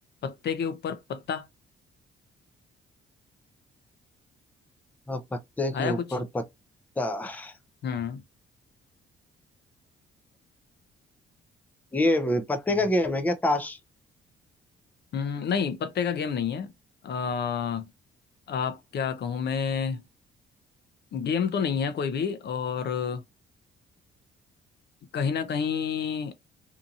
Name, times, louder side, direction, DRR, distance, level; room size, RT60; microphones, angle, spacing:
voice 1, 0.2-1.5 5.7-6.1 7.8-8.2 15.1-16.7 17.0-17.9 18.5-20.0 21.1-23.2 25.1-26.3, left 6 dB, 55° left, 0.6 m, -29 dB
voice 2, 5.1-6.4 7.0-7.5 11.9-13.8, left 1 dB, 10° left, 0.5 m, -26 dB
2.7 x 2.5 x 2.4 m
cardioid pair, 90°, 20 cm